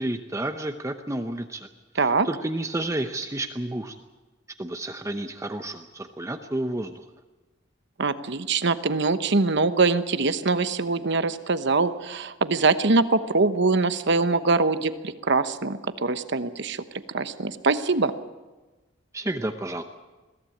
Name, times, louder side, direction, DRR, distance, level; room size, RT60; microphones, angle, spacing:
voice 1, 0.0-1.7 1.9-4.0 4.6-7.0 19.1-19.8, right 1 dB, 15° right, 6 dB, 0.8 m, -31 dB
voice 2, 2.0-2.3 8.0-16.8 17.1-18.1, right 3 dB, 60° right, 11 dB, 1.1 m, -23 dB
22.0 x 16.0 x 8.6 m, 1.2 s
head